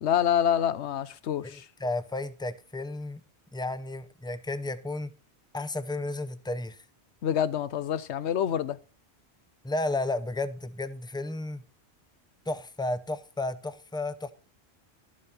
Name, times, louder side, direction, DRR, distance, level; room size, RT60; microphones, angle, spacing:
voice 1, 0.0-1.7 7.2-8.8, left 9 dB, 80° left, 1.0 m, -27 dB
voice 2, 1.4-3.2 3.5-5.1 5.5-6.8 9.6-11.6 12.5-14.3, left 2 dB, 5° left, 0.4 m, -33 dB
12.0 x 7.4 x 4.3 m
omnidirectional pair, 1.1 m